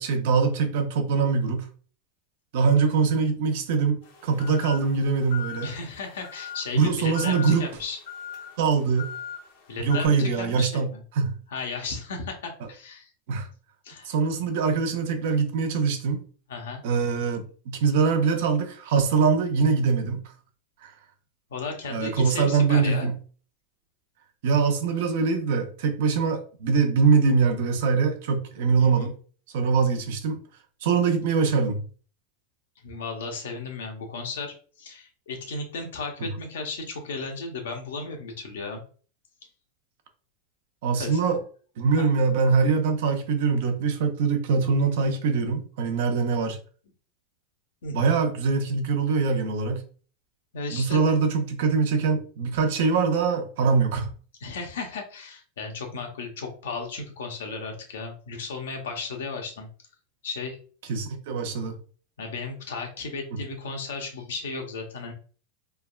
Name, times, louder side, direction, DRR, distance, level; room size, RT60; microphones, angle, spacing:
voice 1, 0.0-1.7 2.5-5.7 6.7-7.7 8.6-9.1 9.8-10.9 11.2-11.3 12.6-12.7 13.3-13.5 14.1-16.2 16.8-20.2 20.8-20.9 21.9-23.1 24.4-29.1 29.5-30.4 30.8-31.8 40.8-41.4 41.8-46.6 47.9-49.8 50.7-54.1 60.9-61.8 63.3-63.4, right 5 dB, 70° right, 0.6 m, -23 dB
sound 1, 4.0-10.1, left 9 dB, 65° left, 1.1 m, -40 dB
voice 2, 5.6-8.0 9.7-11.0 11.5-13.1 13.8-14.1 16.5-16.9 21.5-23.1 28.8-29.1 32.8-38.8 40.9-41.2 41.9-42.1 47.8-48.1 50.5-51.2 54.4-59.7 60.2-60.6 62.2-65.1, left 3 dB, 85° left, 0.8 m, -35 dB
3.4 x 2.1 x 2.3 m
hypercardioid pair, 115°, 0 cm